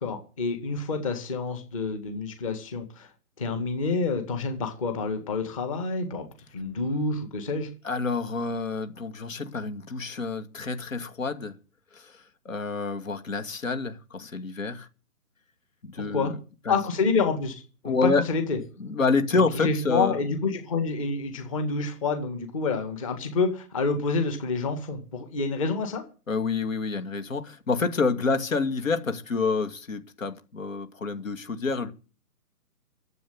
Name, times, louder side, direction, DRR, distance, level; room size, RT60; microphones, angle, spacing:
voice 1, 0.0-3.1 3.4-6.3 6.5-7.7 16.0-16.3 16.7-18.6 19.6-26.0, left 4 dB, 20° left, 2.0 m, -28 dB
voice 2, 7.8-11.6 11.9-14.9 15.8-16.4 16.7-16.8 17.8-18.3 18.8-20.2 26.3-31.9, left 4 dB, 55° left, 2.4 m, -28 dB
12.0 x 8.1 x 9.5 m
hypercardioid pair, 170°, 46 cm